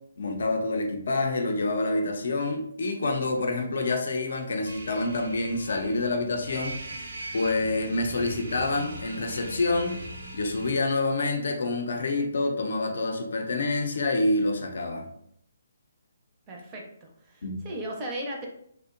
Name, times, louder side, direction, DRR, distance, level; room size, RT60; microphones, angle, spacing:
voice 1, 0.2-6.9 7.3-9.9 10.3-15.0 17.4-17.6, left 2 dB, 65° left, 3 dB, 0.5 m, -27 dB
sound 1, 4.6-10.7, right 1 dB, 75° right, 0.5 m, -40 dB
voice 2, 16.5-18.5, right 1 dB, 25° right, 0 dB, 0.5 m, -36 dB
2.7 x 2.1 x 2.4 m, 0.69 s
figure-of-eight pair, 145°, 0 cm